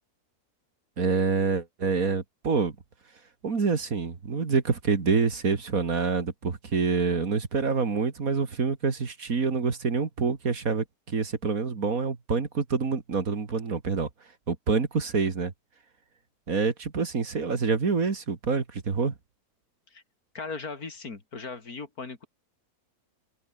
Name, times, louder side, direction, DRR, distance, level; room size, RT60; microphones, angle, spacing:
voice 1, 1.0-2.7 3.4-14.1 14.5-15.5 16.5-19.1, right 5 dB, 60° right, 2.7 m, -26 dB
voice 2, 20.3-22.3, left 4 dB, 70° left, 3.3 m, -38 dB
omnidirectional pair, 1.6 m